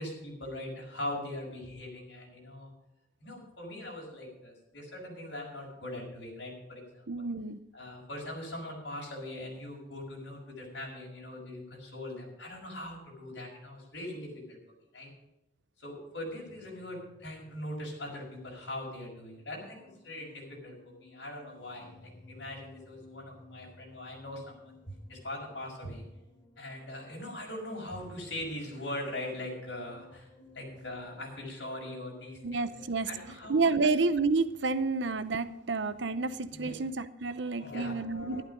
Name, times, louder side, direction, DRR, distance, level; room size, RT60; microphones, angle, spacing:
voice 1, 0.0-2.7 3.2-7.3 7.7-14.6 14.9-15.1 15.8-26.0 26.6-33.6 36.5-36.7 37.3-38.4, left 1 dB, 70° left, -1 dB, 5.8 m, -41 dB
voice 2, 7.1-7.6 32.4-33.1 33.5-38.4, right 3 dB, 75° right, 13 dB, 0.7 m, -29 dB
sound 1, 16.5-35.3, left 2 dB, 20° left, 2.1 m, -58 dB
12.0 x 11.5 x 5.2 m, 0.93 s
head